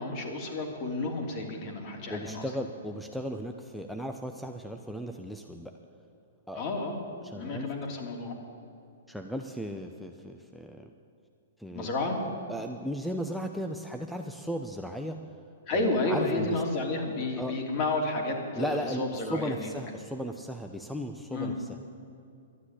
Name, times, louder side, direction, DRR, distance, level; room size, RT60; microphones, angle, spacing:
voice 1, 0.0-2.5 6.5-7.0 7.4-8.3 11.7-12.2 15.7-19.7 21.3-21.6, left 2 dB, 40° left, 1 dB, 3.1 m, -31 dB
voice 2, 2.1-5.7 6.5-6.6 7.2-7.7 9.1-10.9 11.6-11.9 12.5-15.2 15.7-16.6 17.4-17.6 18.6-21.7, equal, ahead, 4 dB, 0.7 m, -36 dB
12.5 x 9.7 x 9.8 m, 2.6 s
hypercardioid pair, 120°, 0 cm